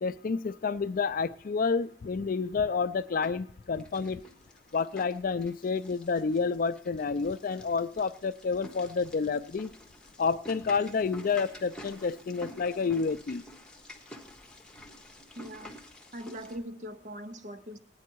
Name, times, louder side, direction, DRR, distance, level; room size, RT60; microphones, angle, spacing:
voice 1, 0.0-4.2 4.7-9.7 10.2-13.4, left 5 dB, 50° left, 14 dB, 0.4 m, -29 dB
sound 1, 2.6-3.5 3.8-16.6, equal, 5° left, 1.4 m, -49 dB
voice 2, 15.4-15.7 16.1-17.8, equal, 45° right, 9 dB, 0.8 m, -41 dB
18.5 x 9.5 x 4.6 m, 0.64 s
head